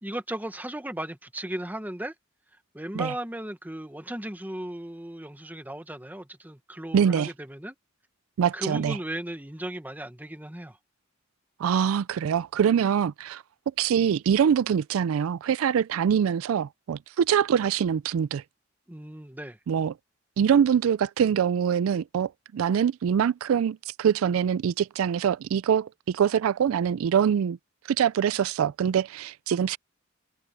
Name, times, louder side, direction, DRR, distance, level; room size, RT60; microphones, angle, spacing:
voice 1, 0.0-2.1 2.7-7.7 8.5-10.8 18.9-19.6, right 1 dB, 10° right, 1.1 m, -36 dB
voice 2, 6.9-7.3 8.4-9.0 11.6-13.4 13.8-18.4 19.7-19.9 20.4-27.6 27.9-29.8, right 8 dB, 85° right, 0.3 m, -24 dB
head